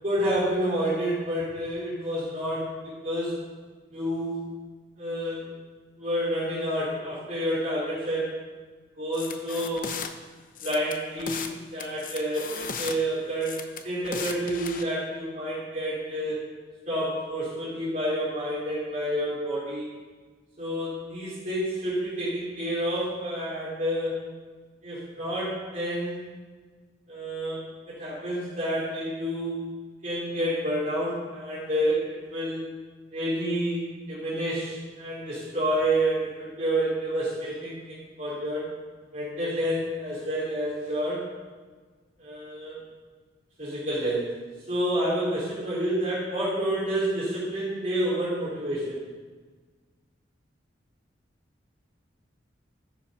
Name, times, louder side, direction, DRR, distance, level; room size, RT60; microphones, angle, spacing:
voice 1, 0.0-3.4 3.9-4.5 5.0-5.5 6.0-8.4 9.0-9.9 10.6-16.4 16.9-19.9 20.6-24.2 24.8-26.3 27.1-29.6 30.0-32.7 33.1-38.7 39.1-41.3 42.2-42.8 43.6-44.3 44.7-49.0, right 1 dB, 40° right, -9 dB, 3.7 m, -29 dB
sound 1, 9.1-10.1 10.6-11.5 11.8-13.0 13.4-14.8, left 6 dB, 45° left, 0.8 m, -36 dB
14.0 x 7.1 x 5.6 m, 1.4 s
head